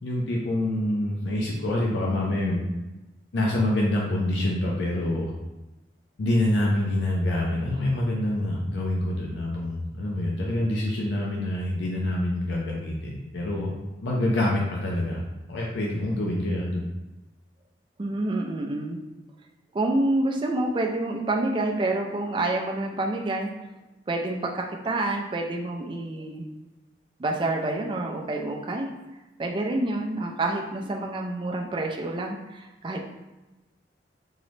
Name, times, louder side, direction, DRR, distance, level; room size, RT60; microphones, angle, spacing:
voice 1, 0.0-2.6 3.3-5.3 6.2-13.7 14.0-15.2 15.5-16.8, left 1 dB, 80° left, -3 dB, 0.5 m, -26 dB
voice 2, 18.0-19.0 19.7-23.5 24.1-26.5 27.2-28.9 29.4-33.0, right 2 dB, 25° right, 1 dB, 0.3 m, -28 dB
3.7 x 2.1 x 3.1 m, 1.0 s
head